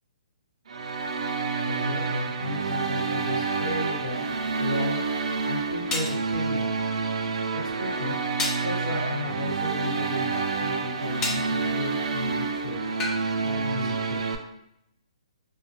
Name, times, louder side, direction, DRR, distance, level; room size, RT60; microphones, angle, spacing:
sound 1, 0.7-14.4, right 4 dB, 70° right, 0.4 m, -28 dB
voice 1, 1.7-4.2 4.6-5.0 5.4-6.7 7.5-8.2 8.6-12.9 13.4-14.3, left 2 dB, 85° left, -4 dB, 1.4 m, -34 dB
sound 2, 5.9-6.2 8.4-8.7 11.2-11.5 13.0-13.2, left 2 dB, 15° left, 0.3 m, -29 dB
2.2 x 2.2 x 3.0 m, 0.77 s
hypercardioid pair, 160°, 4 cm